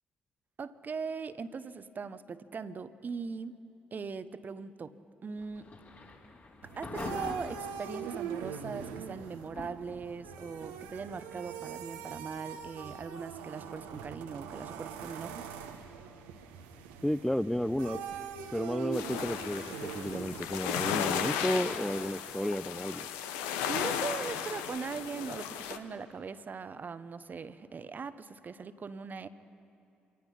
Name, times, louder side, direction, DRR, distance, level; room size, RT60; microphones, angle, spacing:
voice 1, 0.6-3.6 3.9-5.0 5.2-5.7 6.8-15.5 23.7-29.3, right 5 dB, 45° right, 14 dB, 0.8 m, -40 dB
Thunder / Rain, 5.3-22.1, left 3 dB, 45° left, 3.8 m, -50 dB
sound 1, 6.6-20.7, right 8 dB, 80° right, 1.0 m, -42 dB
voice 2, 17.0-18.0 18.5-23.1, equal, 5° left, 14 dB, 0.5 m, -32 dB
sound 2, 18.9-25.8, left 8 dB, 75° left, 0.9 m, -35 dB
25.5 x 18.0 x 5.6 m, 2.6 s
hypercardioid pair, 45°, 4 cm